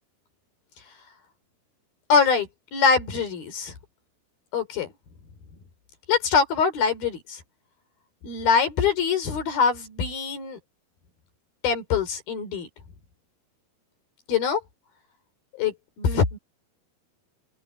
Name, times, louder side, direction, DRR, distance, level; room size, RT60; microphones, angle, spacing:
voice 1, 2.1-3.7 4.5-4.9 6.1-7.4 8.2-10.6 11.6-12.7 14.3-14.6 15.6-16.4, left 6 dB, 70° left, 5.5 m, -23 dB
omnidirectional pair, 4.5 m